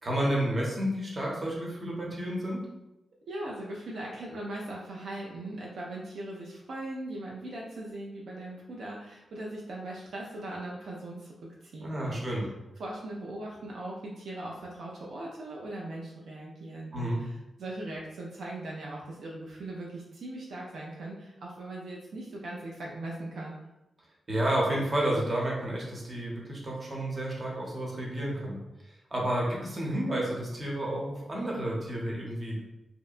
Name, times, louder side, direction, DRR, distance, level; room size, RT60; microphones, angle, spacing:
voice 1, 0.0-2.7 11.8-12.4 16.9-17.2 24.3-28.6 29.1-32.6, right 1 dB, 40° right, -3 dB, 0.8 m, -30 dB
voice 2, 3.3-12.2 12.8-23.5, right 1 dB, 85° right, -3 dB, 0.4 m, -39 dB
2.7 x 2.1 x 2.4 m, 0.93 s
cardioid pair, 75°, 0 cm